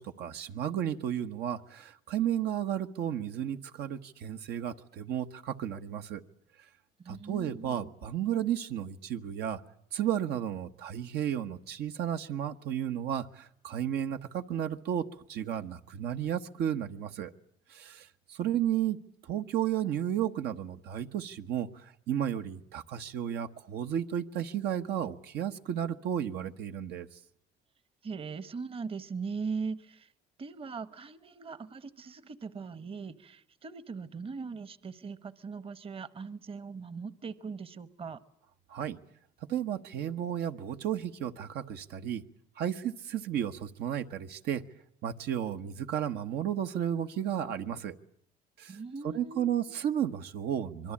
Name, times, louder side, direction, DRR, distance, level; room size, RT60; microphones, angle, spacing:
voice 1, 0.0-6.2 7.1-9.6 9.9-17.3 17.7-19.0 19.2-27.1 38.7-39.0 39.5-42.2 42.6-44.6 45.0-47.9 48.6-48.8 49.0-50.9, right 10 dB, 75° right, 7 dB, 1.2 m, -33 dB
voice 2, 7.0-7.9 28.0-30.1 30.4-38.2 48.7-49.8, right 5 dB, 35° right, 15 dB, 1.1 m, -40 dB
25.5 x 23.0 x 8.7 m, 0.67 s
cardioid pair, 110°, 17 cm